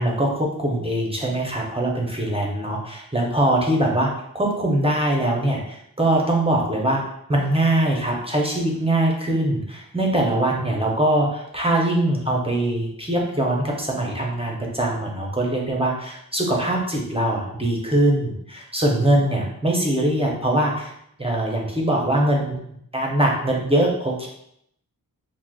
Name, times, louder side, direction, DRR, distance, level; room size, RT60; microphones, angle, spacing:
voice 1, 0.0-7.0 7.3-20.9 21.2-22.6 22.9-24.3, right 1 dB, 15° right, -2 dB, 0.5 m, -22 dB
4.6 x 2.0 x 2.2 m, 0.74 s
wide cardioid pair, 120°, 36 cm